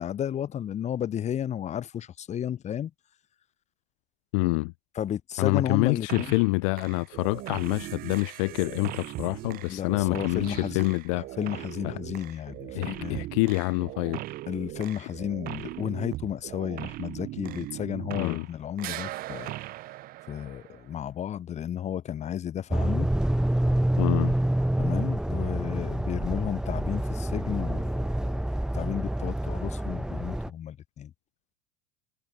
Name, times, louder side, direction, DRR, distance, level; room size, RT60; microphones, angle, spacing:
voice 1, 0.0-2.9 5.0-6.4 9.7-13.2 14.5-19.5 20.3-23.1 24.8-28.4 28.7-31.1, left 10 dB, 40° left, 4.0 m, -33 dB
voice 2, 4.3-4.7 5.4-11.2 11.8-11.9 12.7-14.2 18.2-18.5 24.0-24.3, left 29 dB, 70° left, 0.6 m, -27 dB
sound 1, 6.1-6.5 6.8-18.5 18.8-21.0, right 17 dB, 55° right, 7.4 m, -39 dB
sound 2, 22.7-30.5, right 1 dB, 5° right, 1.9 m, -27 dB
hypercardioid pair, 85°, 18 cm